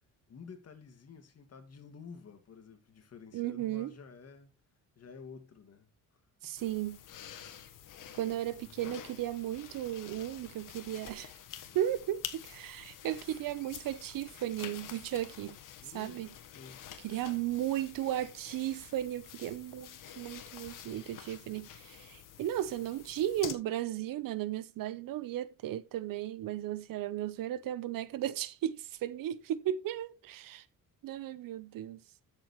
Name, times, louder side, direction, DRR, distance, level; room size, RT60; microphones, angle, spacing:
voice 1, 0.3-4.5 5.0-6.5 8.0-8.4 15.8-16.2 16.5-16.9, left 5 dB, 45° left, 2.3 m, -51 dB
voice 2, 3.3-3.9 6.4-7.0 8.1-11.3 11.7-15.6 15.9-16.3 17.0-30.6 31.0-32.0, right 12 dB, 75° right, 1.0 m, -35 dB
sound 1, 6.6-23.5, left 10 dB, 70° left, 1.4 m, -48 dB
13.0 x 7.3 x 3.2 m
cardioid pair, 105°, 34 cm